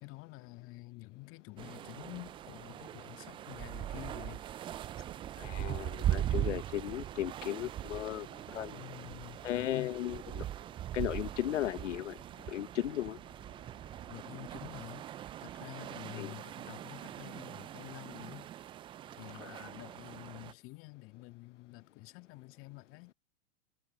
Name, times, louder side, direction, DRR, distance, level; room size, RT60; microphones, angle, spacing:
voice 1, 0.0-4.4 8.7-9.9 14.1-15.1 15.4-18.5 19.2-23.1, left 21 dB, 35° left, 1.9 m, -48 dB
sound 1, 1.6-20.5, right 12 dB, 15° right, 0.4 m, -40 dB
voice 2, 5.4-8.3 8.5-8.8 9.4-10.4 10.9-12.2 12.5-13.2 16.1-16.3 19.4-19.7, left 12 dB, 75° left, 0.9 m, -36 dB
hypercardioid pair, 110°, 37 cm